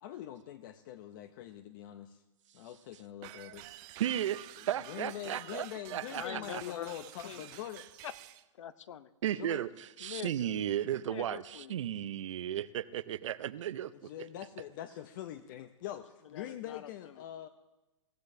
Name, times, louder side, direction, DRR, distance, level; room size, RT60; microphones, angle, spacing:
voice 1, 0.0-2.2 2.5-3.6 4.6-7.9 9.4-9.7 13.9-17.5, left 12 dB, 40° left, 10 dB, 0.6 m, -44 dB
sound 1, 3.2-8.4, right 17 dB, 25° right, 0.4 m, -50 dB
voice 2, 4.0-6.6 9.2-14.1, right 11 dB, 70° right, 16 dB, 0.6 m, -35 dB
voice 3, 6.0-7.5 8.0-8.1 8.6-9.1 10.0-10.6 11.0-11.9 16.3-17.2, left 9 dB, 75° left, 15 dB, 0.8 m, -45 dB
22.0 x 15.0 x 2.7 m, 1.1 s
hypercardioid pair, 155°, 16 cm